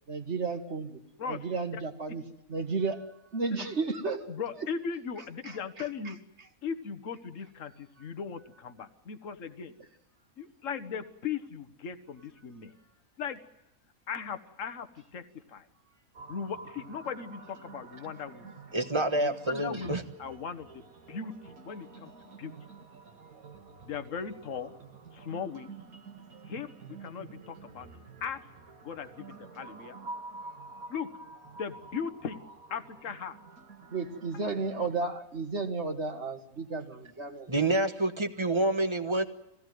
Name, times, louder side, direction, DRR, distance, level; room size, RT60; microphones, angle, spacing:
voice 1, 0.1-1.0 1.3-2.2 2.5-4.7 5.4-6.1 23.3-23.5 33.9-37.5, right 4 dB, 50° right, 4 dB, 2.1 m, -33 dB
voice 2, 4.3-6.2 6.6-9.7 10.4-12.7 13.2-13.4 14.1-15.7 16.3-18.5 19.2-22.5 23.8-24.8 25.1-25.7 26.5-27.9 28.2-28.4 28.8-30.0 30.9-31.1 31.5-32.4 32.7-33.4, left 6 dB, 60° left, 10 dB, 1.6 m, -38 dB
sound 1, 16.1-35.0, right 3 dB, 70° right, 2.1 m, -49 dB
voice 3, 18.7-20.0 37.5-39.2, right 2 dB, 20° right, 8 dB, 1.2 m, -27 dB
23.5 x 17.0 x 9.3 m, 0.87 s
omnidirectional pair, 1.6 m